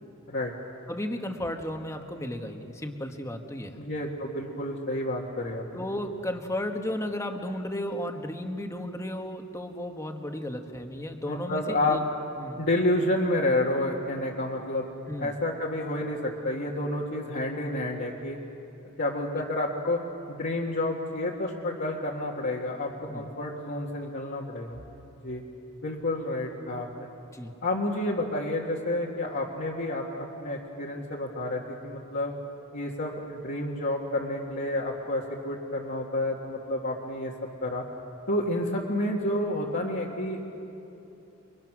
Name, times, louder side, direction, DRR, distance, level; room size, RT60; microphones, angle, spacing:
voice 1, 0.9-3.8 5.7-12.0 12.4-12.7 15.1-15.4 23.1-23.3 27.3-27.5, left 1 dB, 15° left, 4 dB, 1.4 m, -34 dB
voice 2, 3.8-5.6 11.3-12.0 12.6-14.9 15.2-18.4 19.0-20.0 20.3-24.8 25.2-25.4 25.8-27.1 27.6-32.4 32.7-37.3 37.6-37.8 38.3-40.4, left 1 dB, 55° left, -5 dB, 1.9 m, -29 dB
29.5 x 23.0 x 6.2 m, 2.9 s
head